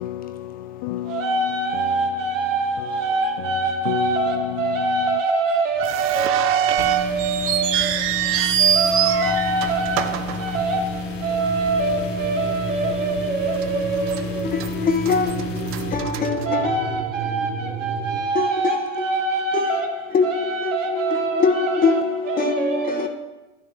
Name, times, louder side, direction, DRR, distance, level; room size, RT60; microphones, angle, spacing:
voice 1, 0.0-2.2 2.8-3.0 3.4-5.2, left 14 dB, 40° left, 0.4 m, -31 dB
voice 2, 1.0-14.6 16.4-23.1, right 3 dB, 85° right, 2.2 m, -25 dB
sound 1, 5.8-11.1 11.4-11.5 12.2-12.5 12.9-13.0 13.6-14.2 14.6-17.0, right 10 dB, 35° right, 0.7 m, -23 dB
sound 2, 6.4-18.2, right 4 dB, 65° right, 2.8 m, -34 dB
sound 3, 6.8-15.9, left 4 dB, 75° left, 1.9 m, -32 dB
voice 3, 14.4-17.0 17.6-17.7 18.3-19.2 19.5-19.8 20.1-23.1, left 5 dB, 25° left, 1.0 m, -24 dB
12.5 x 9.7 x 3.4 m
hypercardioid pair, 105°, 37 cm